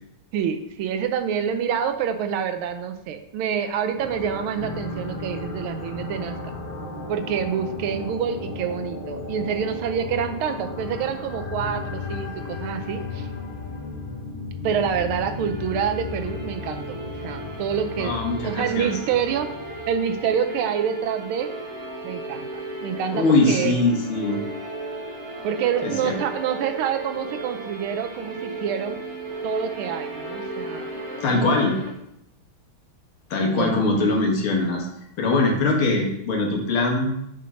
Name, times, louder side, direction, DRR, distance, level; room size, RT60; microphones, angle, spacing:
voice 1, 0.3-6.4 7.1-13.3 14.6-21.5 22.0-22.5 22.8-23.7 25.4-29.0 29.4-30.9 33.4-33.7, right 8 dB, 90° right, 7 dB, 1.6 m, -27 dB
sound 1, 4.0-20.4, left 3 dB, 40° left, 0.8 m, -35 dB
Bass guitar, 4.6-8.9, left 1 dB, 5° right, 1.5 m, -40 dB
sound 2, 15.2-31.9, right 2 dB, 40° right, 1.3 m, -35 dB
voice 2, 18.0-19.0 23.1-24.4 25.8-26.2 31.2-31.8 33.3-34.9 35.2-37.1, left 2 dB, 90° left, 1 dB, 2.3 m, -22 dB
5.4 x 5.1 x 5.6 m, 0.79 s
omnidirectional pair, 2.3 m